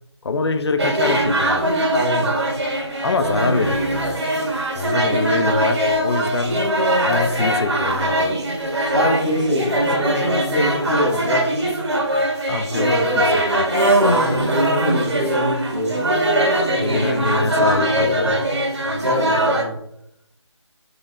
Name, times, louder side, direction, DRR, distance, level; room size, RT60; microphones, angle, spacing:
voice 1, 0.2-1.7 3.0-4.2 4.7-6.6 7.0-8.4 12.5-13.7 16.8-18.4, left 3 dB, 60° left, 8 dB, 0.4 m, -24 dB
sound 1, 0.8-19.6, right 1 dB, 70° right, 1.2 m, -21 dB
voice 2, 1.9-2.3 4.8-5.2 8.9-11.4 12.7-12.9 14.0-15.9 16.7-18.4 18.8-19.7, left 1 dB, 40° right, -4 dB, 1.3 m, -24 dB
3.8 x 3.2 x 2.4 m, 0.75 s
figure-of-eight pair, 175°, 15 cm